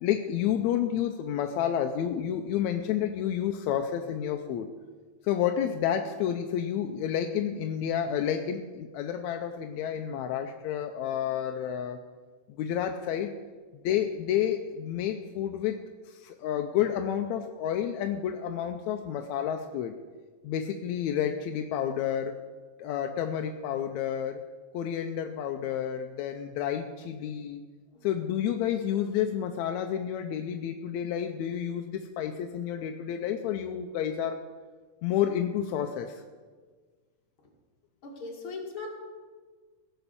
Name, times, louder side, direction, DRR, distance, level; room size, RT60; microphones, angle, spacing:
voice 1, 0.0-4.7 5.2-12.0 12.5-13.3 13.8-15.8 16.1-19.9 20.4-22.4 22.8-24.4 24.7-27.6 28.0-34.4 35.0-36.2, left 9 dB, 75° left, 5 dB, 1.7 m, -30 dB
voice 2, 38.0-38.9, left 3 dB, 45° left, -1 dB, 2.7 m, -38 dB
17.0 x 7.0 x 6.9 m, 1.5 s
omnidirectional pair, 3.7 m